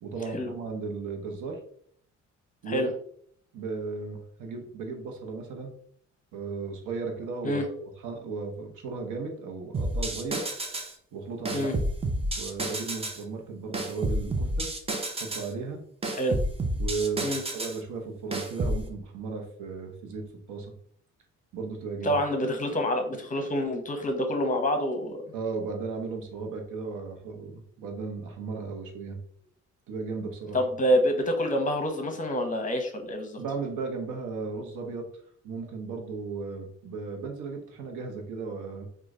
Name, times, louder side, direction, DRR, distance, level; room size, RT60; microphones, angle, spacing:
voice 1, 0.0-1.6 2.6-2.9 3.5-5.7 6.3-10.4 11.1-11.7 12.4-14.7 15.2-15.8 16.8-20.7 21.5-22.2 25.3-29.2 29.9-30.6 33.4-35.1 35.4-38.9, right 4 dB, 85° right, 3 dB, 0.9 m, -35 dB
sound 1, 9.7-10.9 11.5-13.2 13.7-15.5 16.0-17.8 18.3-18.8, right 1 dB, 20° right, 0.6 m, -30 dB
voice 2, 22.0-25.2 30.5-33.4, equal, 25° left, 5 dB, 0.8 m, -27 dB
3.0 x 2.4 x 3.7 m, 0.62 s
cardioid pair, 90°, 30 cm